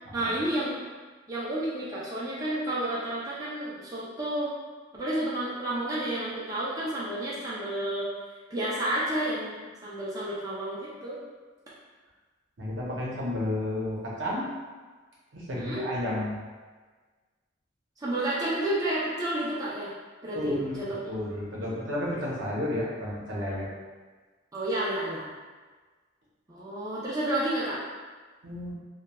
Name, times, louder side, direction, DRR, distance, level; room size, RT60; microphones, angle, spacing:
voice 1, 0.1-0.8 1.3-4.5 4.9-8.1 8.5-11.2 15.6-15.8 18.0-19.9 20.2-20.9 24.5-25.3 26.5-27.8, right 1 dB, 20° right, -8 dB, 0.5 m, -31 dB
voice 2, 12.6-14.5 15.3-16.4 20.3-23.7 28.4-28.7, left 1 dB, 75° right, -5 dB, 0.7 m, -32 dB
3.0 x 2.2 x 2.2 m, 1.4 s
head